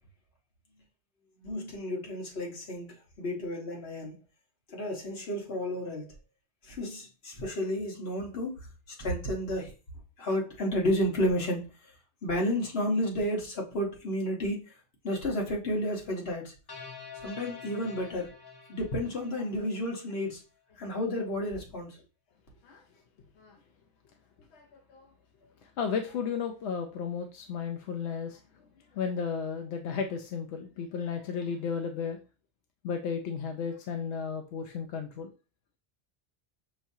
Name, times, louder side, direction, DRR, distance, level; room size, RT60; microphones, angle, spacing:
voice 1, 1.4-4.1 4.7-6.1 6.6-8.6 9.0-9.7 10.2-11.6 12.2-14.6 15.0-16.5 17.2-18.3 18.7-20.4 20.8-22.0, equal, 65° left, 1.4 m, -31 dB
sound 1, 16.7-20.0, left 5 dB, 25° left, 0.8 m, -47 dB
voice 2, 24.5-25.1 25.6-28.4 28.9-32.2 32.8-35.3, left 6 dB, 90° left, 0.9 m, -34 dB
5.8 x 3.1 x 2.7 m
omnidirectional pair, 1.1 m